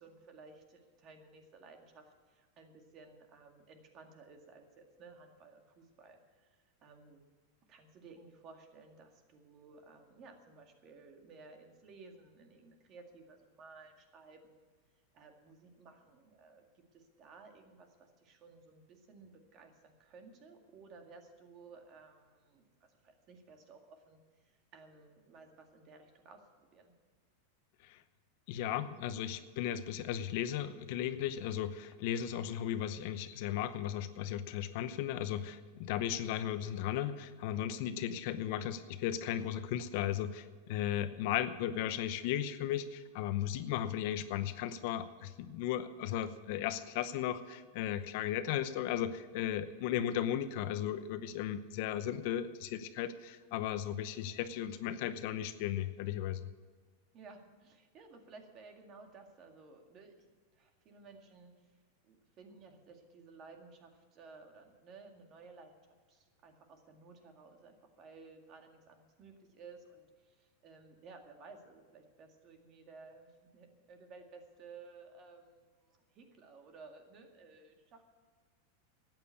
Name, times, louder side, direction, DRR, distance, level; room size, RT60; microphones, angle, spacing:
voice 1, 0.0-7.2 7.7-14.7 15.1-26.9 57.1-60.3 60.5-61.8 62.0-78.0, right 4 dB, 35° right, 4 dB, 2.0 m, -56 dB
voice 2, 28.5-56.5, left 10 dB, 55° left, 11 dB, 0.8 m, -36 dB
13.0 x 9.1 x 8.4 m, 1.5 s
supercardioid pair, 145°, 0 cm